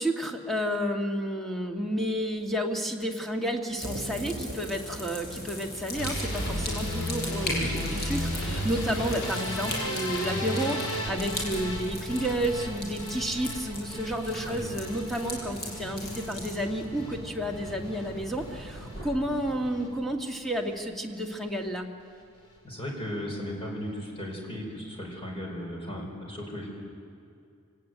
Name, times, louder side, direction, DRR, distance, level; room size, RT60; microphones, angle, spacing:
voice 1, 0.0-21.9, equal, ahead, 1 dB, 1.7 m, -31 dB
sound 1, 3.8-20.1, left 1 dB, 45° left, 7.3 m, -39 dB
sound 2, 3.8-7.4, right 1 dB, 55° right, 1.5 m, -42 dB
sound 3, 6.0-18.1 18.4-19.0 19.3-19.9 20.2-20.4 20.8-20.9 21.1-21.2, equal, 80° left, 5.9 m, -35 dB
voice 2, 7.4-7.9 14.5-14.7 22.6-26.7, equal, 25° left, 0 dB, 5.2 m, -36 dB
25.5 x 17.5 x 9.3 m, 2.4 s
head